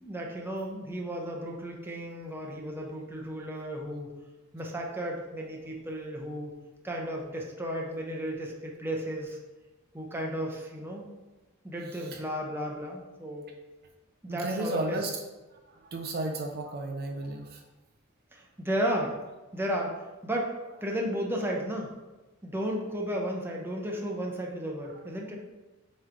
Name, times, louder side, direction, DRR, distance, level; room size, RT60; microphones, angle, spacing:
voice 1, 0.0-4.1 4.5-6.5 6.8-9.4 9.9-11.1 11.6-13.4 14.2-15.0 18.3-19.2 19.5-20.0 20.2-20.5 20.8-21.9 22.4-25.4, equal, 10° right, -1 dB, 0.8 m, -33 dB
voice 2, 14.3-15.1 15.9-17.6, right 2 dB, 50° right, 3 dB, 0.6 m, -33 dB
7.6 x 3.2 x 3.9 m, 1.1 s
head